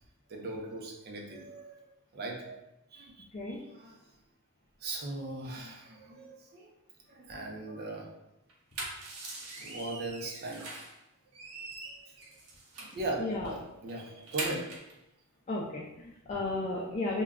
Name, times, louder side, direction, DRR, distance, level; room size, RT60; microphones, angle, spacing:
voice 1, 0.3-1.8 2.1-2.6 2.9-4.2 4.8-6.7 7.1-8.1 9.5-10.7 11.8-12.1 12.8-14.7, right 2 dB, 45° right, 0 dB, 0.5 m, -39 dB
sound 1, 8.5-11.0 11.3-13.0 13.4-13.6 13.9-14.9, right 2 dB, 85° right, 0.6 m, -41 dB
voice 2, 13.2-13.5 15.5-17.2, left 2 dB, 30° left, -4 dB, 0.4 m, -34 dB
2.2 x 2.1 x 3.5 m, 0.90 s
head